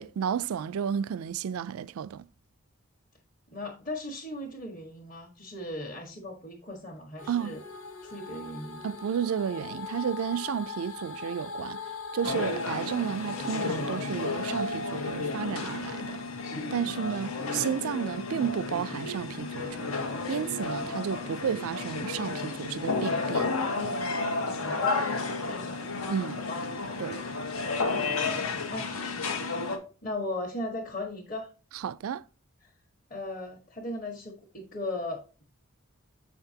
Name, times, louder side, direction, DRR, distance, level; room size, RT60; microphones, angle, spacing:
voice 1, 0.0-2.2 7.3-7.6 8.8-11.8 12.1-16.2 16.7-19.9 20.3-23.5 26.1-26.4 27.0-27.2 31.8-32.2, right 8 dB, 80° right, 0.3 m, -32 dB
voice 2, 3.5-7.6 8.0-8.9 24.6-27.4 28.7-29.0 30.0-31.5 32.6-32.7 33.1-35.2, left 2 dB, 35° left, 1.4 m, -38 dB
sound 1, 7.2-17.4, left 4 dB, 65° left, 1.4 m, -41 dB
sound 2, 12.2-29.8, left 3 dB, 80° left, 1.4 m, -32 dB
7.4 x 5.8 x 2.8 m
head